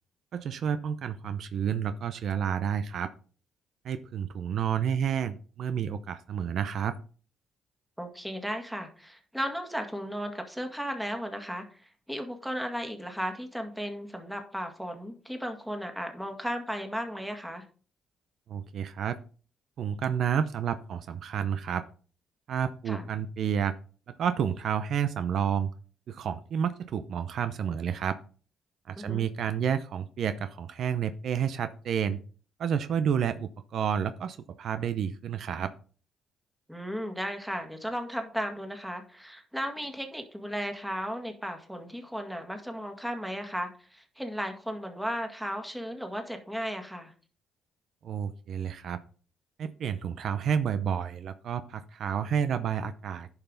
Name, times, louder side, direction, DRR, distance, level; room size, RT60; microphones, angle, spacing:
voice 1, 0.3-3.1 3.8-7.0 18.5-19.2 19.8-21.8 22.5-23.7 24.1-25.7 26.1-28.2 28.9-32.2 32.6-35.7 48.0-49.0 49.6-53.3, right 8 dB, 65° right, 11 dB, 0.6 m, -30 dB
voice 2, 8.0-17.6 22.9-23.1 29.0-29.3 36.7-47.1, equal, 5° right, 4 dB, 1.9 m, -35 dB
11.0 x 5.7 x 4.0 m, 0.41 s
cardioid pair, 90°, 0 cm